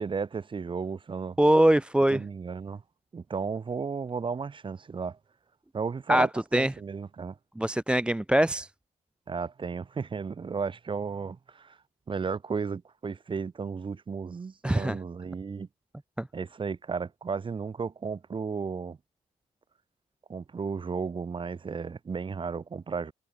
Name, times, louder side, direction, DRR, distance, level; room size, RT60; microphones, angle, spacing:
voice 1, 0.0-1.4 2.1-2.8 3.1-5.2 5.7-7.4 9.3-11.8 12.1-15.7 16.3-19.0 20.3-23.1, right 5 dB, 30° right, 4.3 m, -34 dB
voice 2, 1.4-2.2 6.1-6.3 6.5-6.7 7.6-8.7 14.6-15.0 16.2-16.3, right 1 dB, 5° right, 0.6 m, -22 dB
cardioid pair, 110°, 17 cm